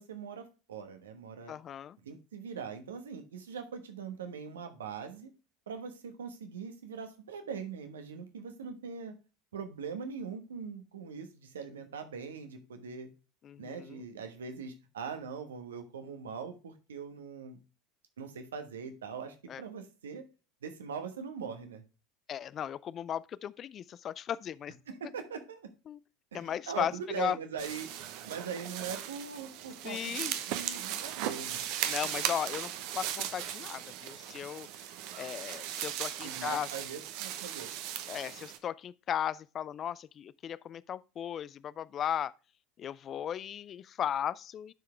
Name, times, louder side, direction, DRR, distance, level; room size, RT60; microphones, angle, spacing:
voice 1, 0.0-1.5 2.0-5.3 5.7-9.1 9.5-13.1 13.6-17.6 18.2-20.2 20.6-21.8 24.9-25.7 26.3-27.9 28.2-31.7 36.2-37.7, right 6 dB, 80° right, 1.2 m, -41 dB
voice 2, 1.5-2.0 13.4-14.0 19.5-19.6 22.3-24.7 25.9-26.0 26.3-27.4 29.8-30.4 31.9-34.8 35.1-36.7 38.1-42.3 42.8-44.7, left 9 dB, 40° left, 0.3 m, -36 dB
sound 1, 27.6-38.6, right 11 dB, 60° right, 0.8 m, -38 dB
10.5 x 4.8 x 3.2 m
hypercardioid pair, 75°, 0 cm